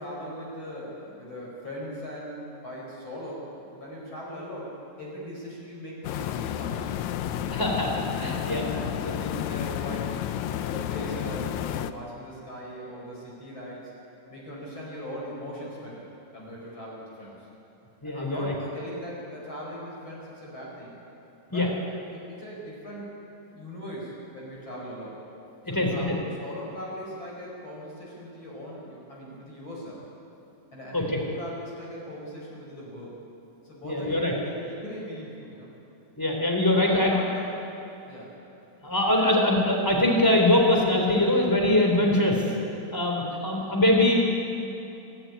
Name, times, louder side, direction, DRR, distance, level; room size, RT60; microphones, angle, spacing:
voice 1, 0.0-6.9 7.3-7.6 8.1-10.1 10.6-13.9 14.3-16.1 16.3-17.5 18.0-20.9 21.5-23.1 23.5-25.2 25.7-26.1 26.4-30.0 30.7-33.1 33.6-35.7 36.7-37.5 38.1-38.3, equal, 35° left, -4 dB, 5.7 m, -39 dB
sound 1, 6.0-11.9, left 11 dB, 75° left, 1.7 m, -31 dB
voice 2, 7.5-8.6 9.0-9.1 18.0-18.5 21.5-21.7 25.7-26.1 30.9-31.2 33.8-34.3 36.2-37.2 38.8-42.5 42.9-44.1, left 1 dB, 5° left, 0 dB, 3.4 m, -23 dB
27.0 x 13.0 x 9.7 m, 3.0 s
omnidirectional pair, 4.0 m